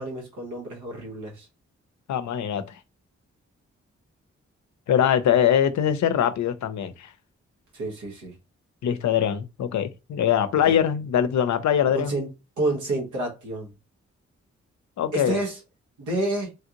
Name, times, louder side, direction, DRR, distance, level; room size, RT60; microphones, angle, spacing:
voice 1, 0.0-1.5 7.7-8.3 10.7-10.8 11.9-12.3 12.6-13.7 15.1-15.6 16.0-16.5, right 2 dB, 90° right, 1.2 m, -29 dB
voice 2, 2.1-2.7 4.9-7.1 8.8-12.2 15.0-15.4, left 9 dB, 70° left, 0.5 m, -22 dB
3.2 x 2.5 x 2.8 m
supercardioid pair, 40°, 29 cm